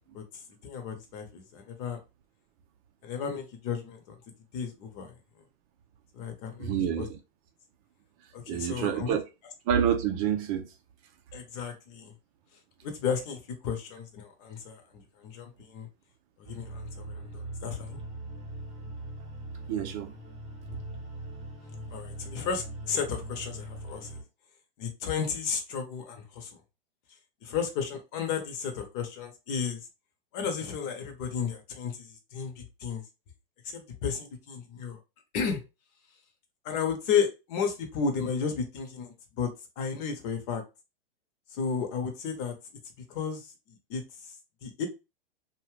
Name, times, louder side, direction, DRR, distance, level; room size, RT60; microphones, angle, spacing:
voice 1, 0.1-2.0 3.0-4.2 4.5-5.1 6.1-7.1 8.3-9.1 11.3-12.1 12.8-14.8 15.2-15.9 16.4-18.0 21.9-24.2 24.8-26.5 27.4-29.8 30.3-33.0 33.6-35.0 35.3-35.6 36.6-39.5 39.8-40.6 41.5-42.5 43.1-43.5 43.9-44.0 44.6-44.9, left 6 dB, 45° left, 1.0 m, -33 dB
voice 2, 6.6-7.2 8.5-9.2 9.7-10.7 19.7-20.1, right 9 dB, 40° right, 0.5 m, -28 dB
sound 1, 16.4-24.2, right 1 dB, 20° right, 1.0 m, -41 dB
2.8 x 2.3 x 3.1 m
hypercardioid pair, 115°, 29 cm